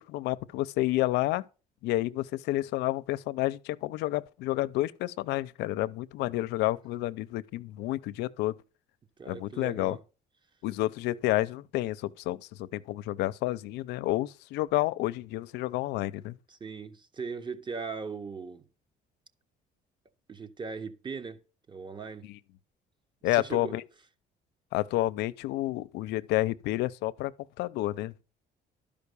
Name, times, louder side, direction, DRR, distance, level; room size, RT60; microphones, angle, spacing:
voice 1, 0.1-1.4 1.8-8.6 9.3-10.0 10.6-16.4 22.2-22.4 23.2-23.8 24.7-27.3 27.6-28.2, left 17 dB, 90° left, 0.6 m, -30 dB
voice 2, 9.2-10.0 16.5-18.6 20.3-21.4 21.7-22.3 23.2-23.7, right 5 dB, 25° right, 1.2 m, -39 dB
12.0 x 5.2 x 6.8 m
cardioid pair, 110°, 17 cm